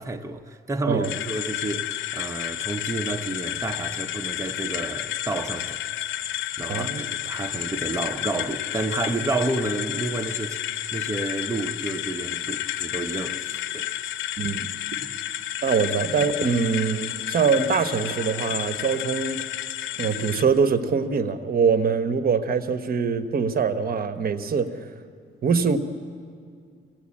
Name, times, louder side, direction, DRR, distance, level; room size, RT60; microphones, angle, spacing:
voice 1, 0.0-5.8 6.6-10.6 10.9-13.9 15.0-15.1, right 2 dB, 15° right, 0.9 m, -30 dB
sound 1, 1.0-20.4, left 12 dB, 80° left, 0.8 m, -31 dB
voice 2, 6.7-7.0 14.4-14.7 15.6-19.5 20.0-24.9 25.4-25.8, right 5 dB, 50° right, 1.2 m, -23 dB
24.0 x 17.5 x 8.7 m
cardioid pair, 90°, 20 cm